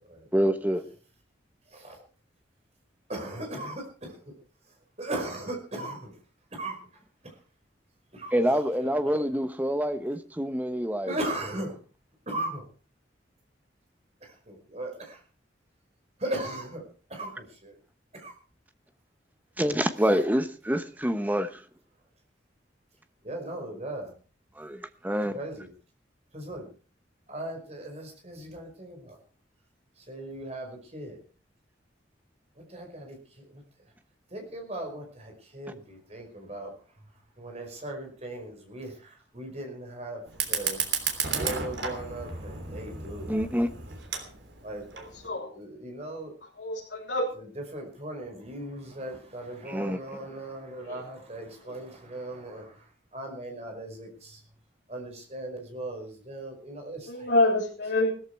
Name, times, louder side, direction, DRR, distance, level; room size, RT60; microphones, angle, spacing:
voice 1, 0.3-0.8 8.3-11.2 19.6-21.6 24.6-25.4 43.3-43.7 49.7-50.0, equal, 10° right, 1.0 m, -26 dB
voice 2, 1.7-2.0 3.1-4.2 5.0-6.2 6.5-6.8 7.2-7.3 8.1-8.3 8.8-8.9 11.1-11.8 12.3-12.7 14.2-15.2 16.2-16.8 17.1-17.8 18.1-18.3 23.2-24.1 25.3-25.7 26.3-26.7 27.3-29.2 30.0-31.2 32.7-33.6 34.3-36.7 37.4-40.2 40.5-43.3 44.6-45.1 45.5-46.3 47.4-52.9 53.1-54.4 54.9-57.3, right 1 dB, 35° right, 5.2 m, -38 dB
Fire, 40.3-45.3, right 6 dB, 75° right, 3.4 m, -33 dB
voice 3, 46.6-47.3 50.9-51.0 51.6-51.7 57.1-58.1, left 2 dB, 70° left, 3.7 m, -26 dB
17.0 x 14.0 x 4.7 m
head